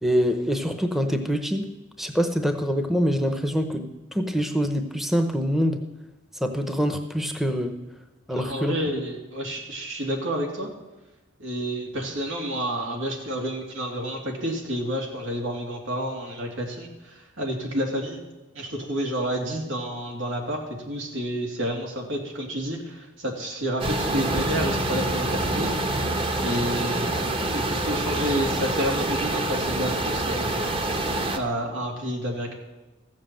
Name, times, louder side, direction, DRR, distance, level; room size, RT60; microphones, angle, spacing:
voice 1, 0.0-1.7 2.0-5.8 6.4-7.8 8.3-8.7, equal, ahead, 6 dB, 0.8 m, -25 dB
voice 2, 8.3-10.7 11.4-18.2 18.5-25.7 26.4-27.2 27.5-30.5 31.3-32.5, equal, 90° right, 1 dB, 2.8 m, -29 dB
sound 1, 23.8-31.4, right 1 dB, 30° right, 1.0 m, -26 dB
14.5 x 7.4 x 7.6 m, 1.1 s
head